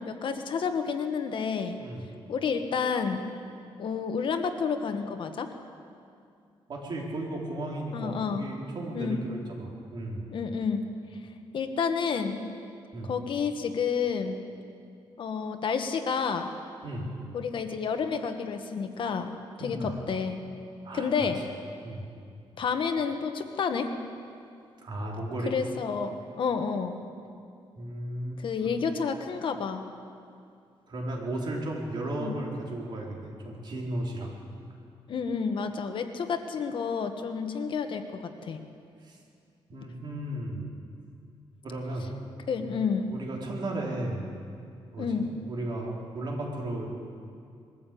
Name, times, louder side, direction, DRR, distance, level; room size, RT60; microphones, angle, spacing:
voice 1, 0.0-1.8 2.3-3.2 3.8-5.5 7.9-8.5 8.9-9.2 10.3-10.8 11.5-12.5 13.0-14.4 15.2-16.5 17.3-19.3 19.6-20.4 20.9-21.4 22.6-23.9 25.4-27.0 28.4-29.8 32.2-32.4 35.1-38.6 42.5-43.1 45.0-45.3, left 5 dB, 60° left, 7 dB, 1.4 m, -30 dB
voice 2, 1.8-2.1 6.7-10.3 12.9-13.1 16.8-17.1 19.6-20.0 20.8-21.3 21.8-22.1 24.8-25.5 27.8-28.7 30.9-34.4 39.0-39.2 39.7-40.6 41.6-42.1 42.6-42.7 43.1-44.3 44.9-45.2 45.5-46.9, right 1 dB, 50° right, -2 dB, 4.3 m, -35 dB
21.5 x 14.0 x 8.6 m, 2.4 s
cardioid pair, 130°, 10 cm